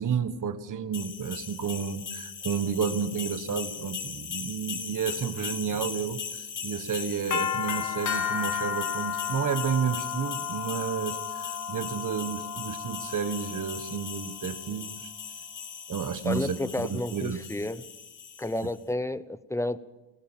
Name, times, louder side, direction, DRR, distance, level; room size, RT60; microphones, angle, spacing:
voice 1, 0.0-15.1 15.9-17.4, right 7 dB, 40° right, 10 dB, 1.5 m, -31 dB
sound 1, 0.9-18.7, left 7 dB, 40° left, 2.0 m, -35 dB
voice 2, 16.2-17.8 18.4-19.8, left 1 dB, 5° left, 16 dB, 0.8 m, -31 dB
20.5 x 17.0 x 7.5 m, 1.1 s
cardioid pair, 95°, 47 cm